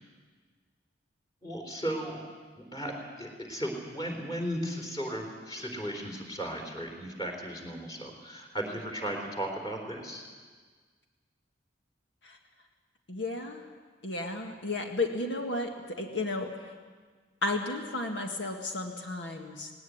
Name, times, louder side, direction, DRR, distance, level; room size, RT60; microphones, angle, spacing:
voice 1, 1.4-2.2 2.6-2.9 3.2-10.2, equal, 20° left, 2 dB, 3.7 m, -36 dB
voice 2, 13.1-13.6 14.0-16.8 17.4-19.7, left 2 dB, 75° left, 3 dB, 1.9 m, -33 dB
19.0 x 18.0 x 9.6 m, 1.5 s
head